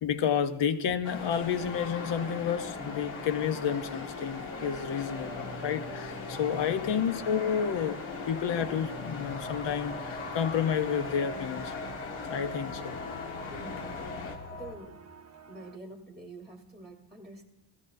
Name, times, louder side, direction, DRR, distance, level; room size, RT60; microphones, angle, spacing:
voice 1, 0.0-11.7 12.3-13.0, left 8 dB, 65° left, 0.8 m, -30 dB
sound 1, 1.0-14.4, left 4 dB, 85° left, 1.7 m, -39 dB
sound 2, 2.5-15.8, right 4 dB, 35° right, 0.7 m, -52 dB
sound 3, 9.3-14.8, left 2 dB, 20° left, 1.1 m, -43 dB
voice 2, 13.5-14.1 14.5-14.9 15.5-17.5, right 2 dB, ahead, 1.2 m, -47 dB
15.5 x 15.0 x 2.6 m
wide cardioid pair, 155°, 47 cm